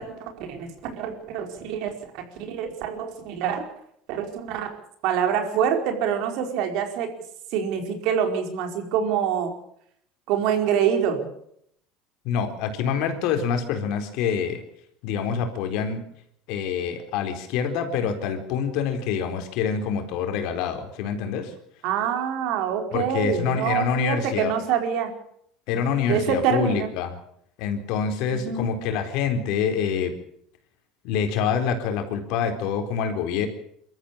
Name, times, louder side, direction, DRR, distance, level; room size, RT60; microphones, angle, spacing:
voice 1, 0.0-3.7 4.1-4.8 5.0-7.1 7.5-9.5 10.3-11.3 21.8-25.1 26.1-26.9 28.3-28.7, right 8 dB, 65° right, 5 dB, 4.8 m, -26 dB
voice 2, 12.2-14.6 15.0-16.0 16.5-21.5 22.9-24.5 25.7-27.1 27.6-30.1 31.0-33.5, left 7 dB, 70° left, 7 dB, 4.1 m, -26 dB
24.0 x 13.5 x 8.7 m, 0.70 s
supercardioid pair, 105°, 0 cm